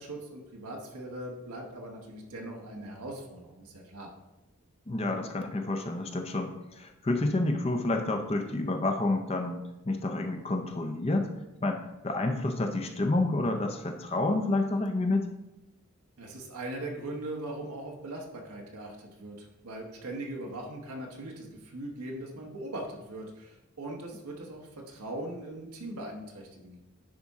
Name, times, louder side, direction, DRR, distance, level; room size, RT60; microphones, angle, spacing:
voice 1, 0.0-4.1 16.2-26.8, right 1 dB, 85° right, 0 dB, 1.2 m, -40 dB
voice 2, 4.9-11.3 11.6-15.3, left 2 dB, 25° left, 5 dB, 0.5 m, -29 dB
10.0 x 4.2 x 3.6 m, 0.98 s
head